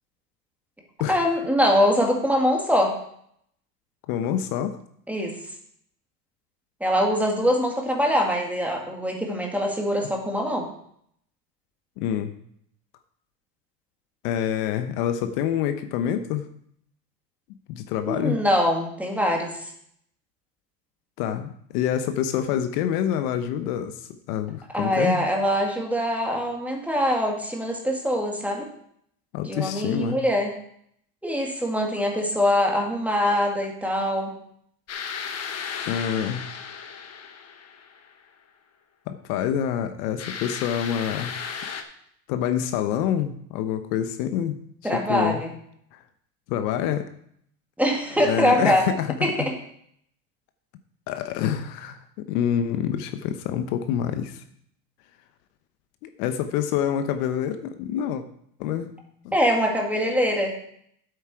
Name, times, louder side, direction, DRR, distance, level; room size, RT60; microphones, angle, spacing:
voice 1, 1.1-3.0 5.1-5.4 6.8-10.7 18.1-19.7 24.7-28.7 29.4-30.5 31.2-34.3 44.8-45.5 47.8-48.8 49.2-49.5 59.3-60.5, equal, 5° right, 1 dB, 2.0 m, -23 dB
voice 2, 4.1-4.8 12.0-12.3 14.2-16.5 17.7-18.4 21.2-25.3 29.3-30.2 35.9-36.4 39.1-41.3 42.3-44.6 44.8-45.4 45.9-46.0 46.5-47.1 48.2-49.5 51.1-54.4 56.0-58.2 58.6-58.9 59.2-59.4, left 9 dB, 65° left, 9 dB, 1.0 m, -27 dB
sound 1, 34.9-38.1 40.2-41.8, left 6 dB, 30° left, 1.2 m, -35 dB
9.8 x 8.2 x 4.8 m, 0.68 s
supercardioid pair, 125°, 49 cm